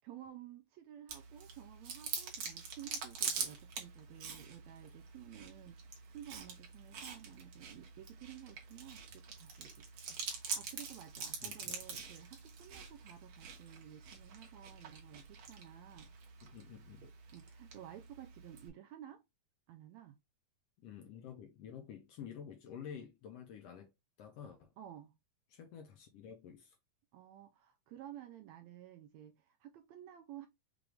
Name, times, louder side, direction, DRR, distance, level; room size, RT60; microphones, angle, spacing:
voice 1, 0.0-16.2 17.3-19.2 19.7-20.2 24.8-25.1 27.1-30.5, right 12 dB, 85° right, 1.6 m, -53 dB
Chewing mastication, 1.1-18.7, right 6 dB, 60° right, 2.2 m, -45 dB
voice 2, 11.4-11.8 16.4-17.0 20.8-23.9 24.2-24.7 25.5-26.8, left 8 dB, 90° left, 1.4 m, -50 dB
6.2 x 2.6 x 3.3 m
omnidirectional pair, 3.8 m